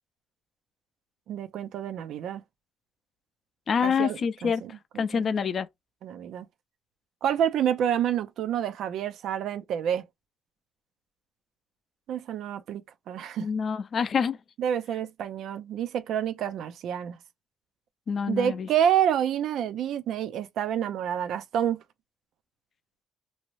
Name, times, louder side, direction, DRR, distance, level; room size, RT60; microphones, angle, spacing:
voice 1, 1.3-2.4 3.8-5.3 6.0-6.5 7.2-10.1 12.1-12.8 13.1-13.5 14.6-17.2 18.3-21.8, right 9 dB, 75° right, 0.4 m, -28 dB
voice 2, 3.7-4.6 5.0-5.7 13.4-14.4 18.1-18.7, left 6 dB, 50° left, 0.4 m, -26 dB
2.7 x 2.0 x 3.0 m
cardioid pair, 90°, 0 cm